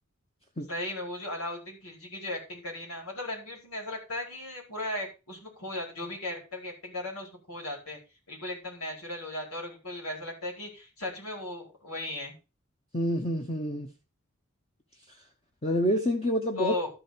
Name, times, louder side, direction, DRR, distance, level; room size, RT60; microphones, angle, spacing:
voice 1, 0.7-8.0 8.3-12.3 16.5-16.9, left 2 dB, 90° left, 4.8 m, -36 dB
voice 2, 12.9-13.9 15.6-16.7, equal, 30° left, 1.1 m, -27 dB
13.0 x 5.1 x 5.1 m
head